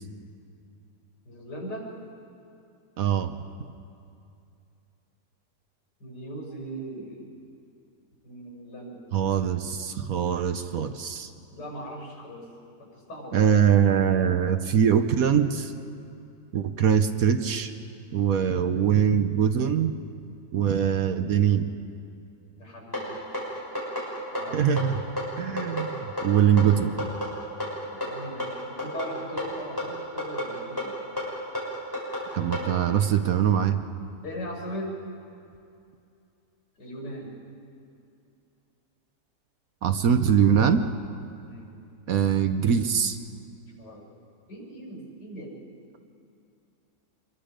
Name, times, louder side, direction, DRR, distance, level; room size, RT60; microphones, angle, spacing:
voice 1, 1.2-1.9 6.0-7.3 8.2-9.0 11.5-12.5 12.8-13.7 22.5-23.2 24.3-24.7 27.9-31.0 34.2-35.0 36.8-37.3 41.4-41.7 43.7-44.0 44.5-45.5, equal, 75° left, -1 dB, 6.4 m, -39 dB
voice 2, 3.0-3.4 9.1-11.3 13.3-15.7 16.5-17.7 18.1-20.0 20.5-21.7 24.5-24.9 25.4-27.1 32.3-33.8 39.8-40.9 42.1-43.2, right 8 dB, 60° right, 8 dB, 1.1 m, -22 dB
sound 1, 22.9-32.7, left 1 dB, 10° left, 6.2 m, -32 dB
26.5 x 22.0 x 5.1 m, 2.6 s
omnidirectional pair, 1.8 m